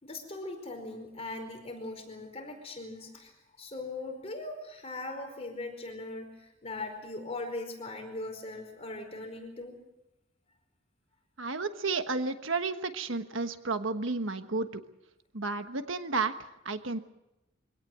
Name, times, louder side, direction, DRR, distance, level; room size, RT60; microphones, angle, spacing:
voice 1, 0.0-3.3 3.6-9.8, left 2 dB, 30° left, 4 dB, 4.7 m, -40 dB
voice 2, 11.4-14.8 15.3-17.0, right 3 dB, 75° right, 8 dB, 1.3 m, -32 dB
24.5 x 17.5 x 7.6 m, 0.94 s
head